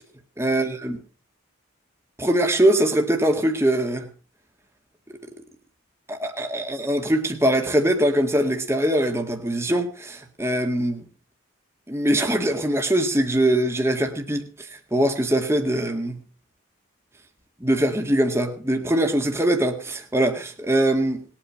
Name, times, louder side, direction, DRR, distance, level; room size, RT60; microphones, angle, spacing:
voice 1, 0.4-1.0 2.2-4.1 6.1-11.0 11.9-16.2 17.6-21.2, right 1 dB, 10° right, 1.8 m, -22 dB
20.0 x 8.9 x 6.3 m
head